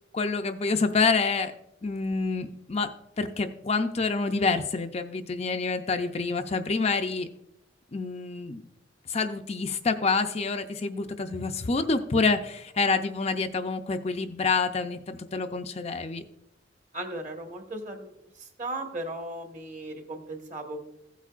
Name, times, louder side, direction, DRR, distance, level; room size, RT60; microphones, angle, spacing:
voice 1, 0.1-1.5 1.8-2.9 3.2-7.3 7.9-8.6 9.1-16.2, left 4 dB, 35° left, 6 dB, 0.5 m, -27 dB
voice 2, 16.9-18.1 18.6-20.8, right 1 dB, 40° right, 3 dB, 1.4 m, -36 dB
15.5 x 8.1 x 2.5 m, 0.82 s
head